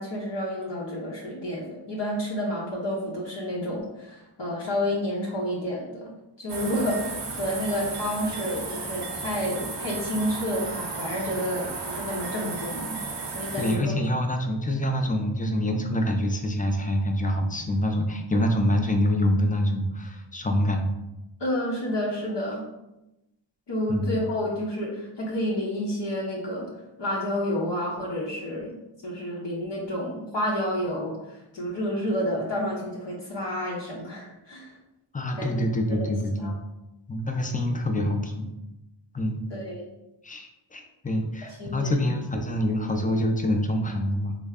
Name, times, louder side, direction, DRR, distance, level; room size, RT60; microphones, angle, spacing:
voice 1, 0.0-13.0 13.3-14.0 21.4-22.7 23.7-26.7 27.0-34.7 35.4-35.5 35.9-36.1 36.4-36.5 39.5-39.9 41.4-42.0, equal, 65° left, -4 dB, 0.8 m, -30 dB
sound 1, 6.5-13.8, right 3 dB, 60° right, 0.8 m, -34 dB
voice 2, 13.6-20.9 23.9-24.2 35.1-36.5 37.1-38.5 39.1-39.4 40.2-44.4, left 1 dB, 20° left, 4 dB, 0.4 m, -26 dB
3.2 x 2.1 x 3.5 m, 0.94 s
cardioid pair, 45°, 46 cm